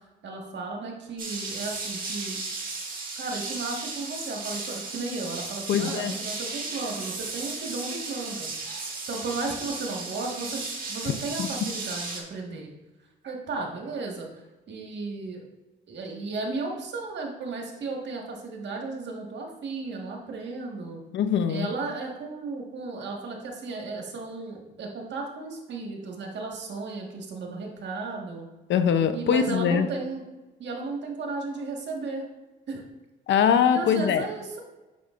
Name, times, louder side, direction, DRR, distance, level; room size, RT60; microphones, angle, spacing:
voice 1, 0.2-2.4 3.1-12.7 13.2-14.3 14.7-15.4 15.9-21.0 21.5-28.5 29.1-30.2 30.6-32.2 32.7-32.8 33.7-34.6, right 3 dB, 65° right, 1 dB, 1.6 m, -34 dB
sound 1, 1.2-12.2, right 3 dB, 45° right, 1.7 m, -35 dB
voice 2, 5.7-6.1 11.4-11.5 21.1-21.7 28.7-29.9 33.3-34.3, left 7 dB, 70° left, 9 dB, 0.7 m, -22 dB
8.4 x 6.0 x 2.5 m, 1.1 s
cardioid pair, 90°, 20 cm